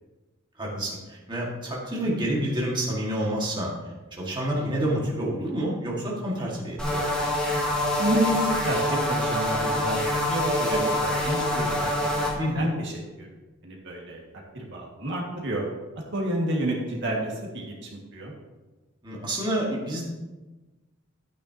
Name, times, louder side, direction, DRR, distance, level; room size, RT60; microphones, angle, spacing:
voice 1, 0.6-3.7 4.1-7.1 12.4-12.6 19.0-20.0, right 1 dB, 20° right, -4 dB, 1.9 m, -28 dB
sound 1, 6.8-12.3, left 1 dB, 5° left, 2.2 m, -25 dB
voice 2, 8.0-12.3 12.5-13.3 13.6-14.2 14.5-15.6 16.1-18.3, right 1 dB, 60° right, -2 dB, 1.9 m, -30 dB
12.5 x 9.1 x 2.9 m, 1.2 s
head